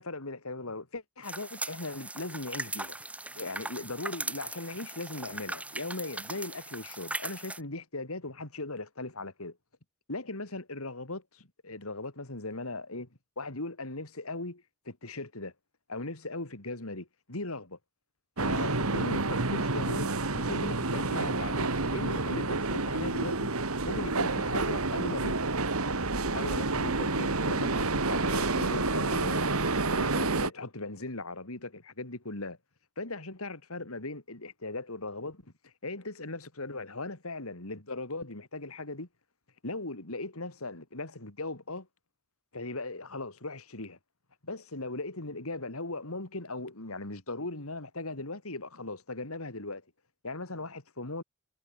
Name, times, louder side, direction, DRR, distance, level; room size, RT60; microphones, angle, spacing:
voice 1, 0.0-3.0 3.4-9.6 10.1-13.1 13.4-15.5 15.9-17.8 18.4-23.5 23.8-25.4 25.9-29.5 29.9-32.6 33.0-39.1 39.6-41.9 42.5-44.0 44.4-49.8 50.2-51.2, left 2 dB, 85° left, 3.5 m, -38 dB
sound 1, 1.2-7.6, right 2 dB, 5° right, 1.7 m, -39 dB
sound 2, 18.4-30.5, right 3 dB, 90° right, 2.5 m, -29 dB
head